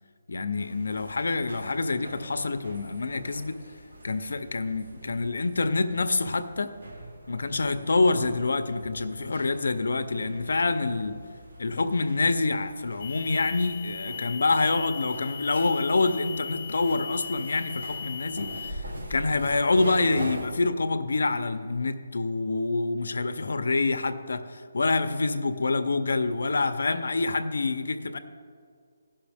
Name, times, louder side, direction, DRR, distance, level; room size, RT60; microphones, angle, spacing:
voice 1, 0.3-3.6 4.0-6.7 7.3-11.1 11.6-28.2, left 3 dB, 65° left, 10 dB, 0.6 m, -26 dB
sound 1, 0.6-20.5, right 1 dB, 65° right, 1.7 m, -43 dB
sound 2, 13.0-18.7, left 7 dB, 15° left, 0.5 m, -39 dB
15.5 x 5.7 x 3.5 m, 2.1 s
hypercardioid pair, 180°, 0 cm